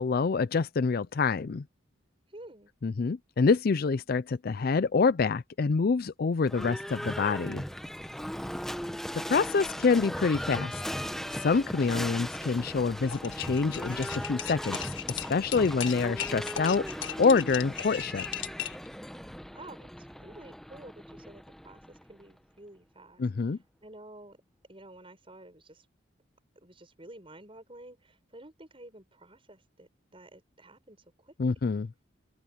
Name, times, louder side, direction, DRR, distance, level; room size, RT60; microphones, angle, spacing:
voice 1, 0.0-1.6 2.8-7.6 9.3-10.8 11.3-14.8 15.1-18.3 23.2-23.6 31.4-31.9, left 4 dB, 50° left, 0.4 m, -26 dB
voice 2, 2.3-2.7 19.5-24.4 24.7-25.9 26.6-31.3, right 1 dB, 30° right, 6.8 m, -51 dB
Livestock farm animals working animals / Bell, 6.4-22.3, equal, ahead, 1.0 m, -38 dB
sound 1, 13.1-18.9, left 10 dB, 70° left, 1.6 m, -38 dB
open air
head